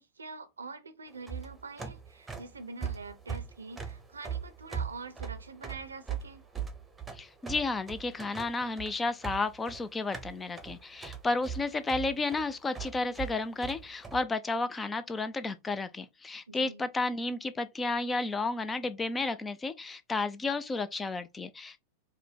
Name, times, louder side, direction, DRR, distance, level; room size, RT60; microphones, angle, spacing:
voice 1, 0.0-6.4 16.5-16.8, right 4 dB, 75° right, 0.7 m, -45 dB
sound 1, 1.1-14.2, right 7 dB, 10° right, 0.9 m, -40 dB
voice 2, 7.1-21.8, left 3 dB, 15° left, 0.5 m, -32 dB
5.0 x 2.2 x 4.4 m
figure-of-eight pair, 90°, 0 cm